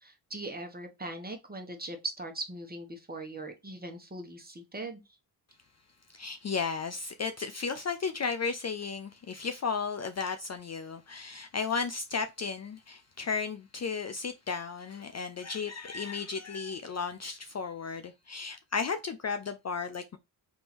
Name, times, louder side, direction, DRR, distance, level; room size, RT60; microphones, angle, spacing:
voice 1, 0.0-5.0, right 2 dB, 20° right, 1.1 m, -40 dB
voice 2, 6.1-20.2, left 5 dB, 40° left, 0.4 m, -34 dB
3.6 x 2.8 x 4.3 m
cardioid pair, 70°, 45 cm